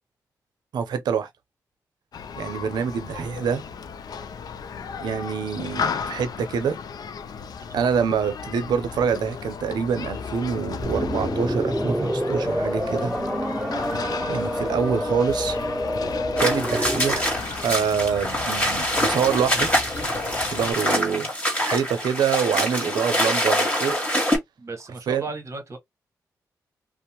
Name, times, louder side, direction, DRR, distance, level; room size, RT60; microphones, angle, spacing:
voice 1, 0.7-1.3 2.4-3.6 5.0-6.8 7.7-13.2 14.3-15.6 16.4-17.3 17.6-19.7 20.5-21.3 21.6-24.0 25.1-25.2, right 7 dB, 85° right, 0.6 m, -25 dB
Human group actions, 2.1-20.7, left 6 dB, 65° left, 0.4 m, -35 dB
sound 1, 10.8-17.3, equal, 5° right, 1.4 m, -27 dB
sound 2, 16.4-24.4, equal, 20° left, 1.6 m, -25 dB
voice 2, 24.6-25.8, right 3 dB, 45° right, 1.0 m, -36 dB
2.6 x 2.0 x 2.9 m
cardioid pair, 65°, 7 cm